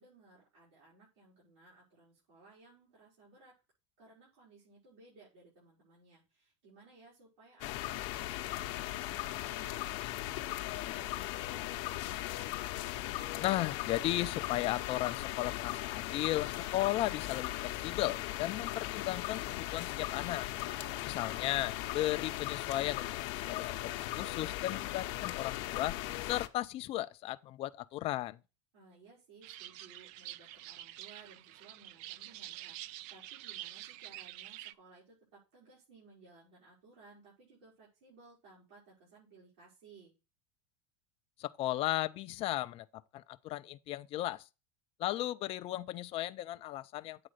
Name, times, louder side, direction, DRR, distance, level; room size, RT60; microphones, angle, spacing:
voice 1, 0.0-3.5 4.0-12.3 20.7-21.2 28.7-40.1, right 3 dB, 85° right, 5.8 m, -60 dB
sound 1, 7.6-26.5, left 16 dB, 65° left, 0.8 m, -38 dB
voice 2, 13.4-20.5 21.0-26.0 26.3-28.4 41.4-42.9 43.1-44.4 45.0-47.3, left 15 dB, 40° left, 0.4 m, -35 dB
sound 2, 29.4-34.7, right 14 dB, 55° right, 0.4 m, -47 dB
8.6 x 3.8 x 6.5 m
supercardioid pair, 130°, 15 cm